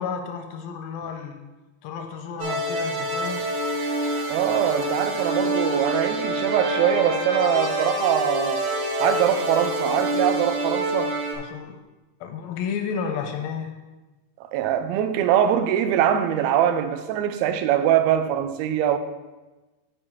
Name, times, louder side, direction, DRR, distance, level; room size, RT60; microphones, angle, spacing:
voice 1, 0.0-1.4 1.8-3.5 11.3-11.8 12.2-13.8, left 6 dB, 80° left, 2.1 m, -32 dB
sound 1, 2.4-11.3, right 1 dB, 65° right, 3.1 m, -26 dB
sound 2, 2.8-8.9, left 4 dB, 65° left, 1.3 m, -43 dB
voice 2, 4.3-8.6 9.0-11.2 14.5-19.0, right 10 dB, 80° right, 2.3 m, -22 dB
7.0 x 5.1 x 7.0 m
omnidirectional pair, 4.4 m